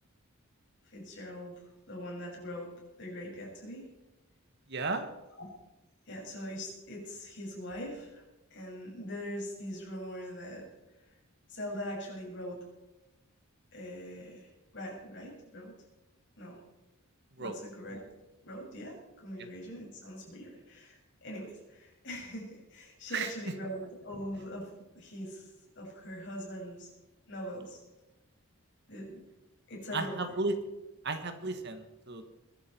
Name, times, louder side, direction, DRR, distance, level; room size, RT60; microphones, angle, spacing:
voice 1, 0.8-2.7 3.0-3.9 5.4-5.5 6.1-8.2 8.5-10.7 11.5-12.6 13.7-15.8 16.4-16.6 17.4-18.0 18.4-26.9 27.3-27.8 28.9-29.2 29.7-30.3, equal, 55° left, -2 dB, 6.5 m, -42 dB
voice 2, 4.7-5.1 17.4-17.6 23.1-23.3 29.9-30.5 31.0-32.3, right 3 dB, 50° right, 8 dB, 1.6 m, -34 dB
22.5 x 11.5 x 4.5 m, 1.0 s
head